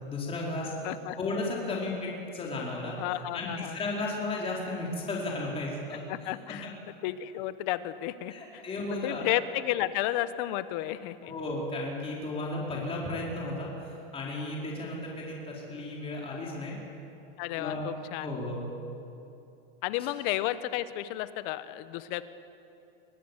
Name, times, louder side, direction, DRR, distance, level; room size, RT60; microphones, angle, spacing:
voice 1, 0.0-0.7 1.2-2.9 3.3-6.3 8.3-9.2 11.2-16.8 17.6-17.9 18.2-18.7, left 2 dB, 20° left, -3 dB, 4.4 m, -34 dB
voice 2, 0.8-1.2 1.7-1.8 3.0-3.8 6.1-6.8 7.0-8.6 8.9-11.3 17.4-18.3 19.8-22.2, left 14 dB, 55° left, 13 dB, 1.1 m, -32 dB
24.5 x 19.0 x 7.3 m, 2.8 s
supercardioid pair, 135°, 30 cm